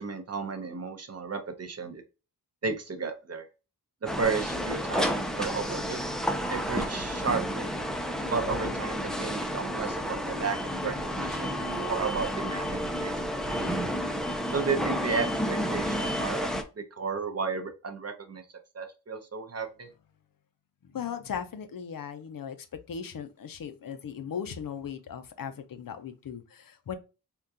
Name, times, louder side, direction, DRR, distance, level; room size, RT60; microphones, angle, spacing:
voice 1, 0.0-2.0 2.6-3.4 4.0-6.0 6.5-7.7 8.3-10.6 10.8-13.1 13.5-13.7 14.5-16.5 17.0-18.4 18.7-19.9, right 5 dB, 40° right, 0.6 m, -33 dB
sound 1, 4.1-16.6, equal, ahead, 0.3 m, -31 dB
voice 2, 20.8-22.6 22.9-27.0, left 7 dB, 55° left, 0.6 m, -37 dB
3.7 x 2.3 x 2.7 m
wide cardioid pair, 120°, 39 cm